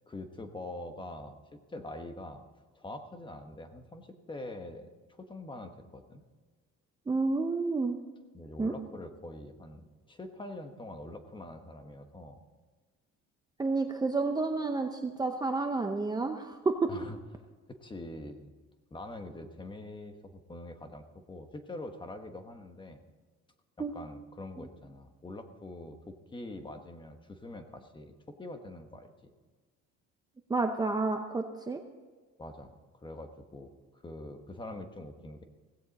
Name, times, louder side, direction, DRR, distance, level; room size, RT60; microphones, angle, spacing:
voice 1, 0.1-2.4 2.7-6.2 8.3-12.4 16.9-17.2 17.7-18.5 18.9-23.0 23.8-29.3 32.4-35.4, left 1 dB, 15° left, 6 dB, 1.2 m, -44 dB
voice 2, 7.1-8.0 8.6-8.7 13.6-16.9 23.8-23.9 30.5-31.8, right 3 dB, 15° right, 5 dB, 0.7 m, -30 dB
16.5 x 16.5 x 4.1 m, 1.4 s
cardioid pair, 155°, 29 cm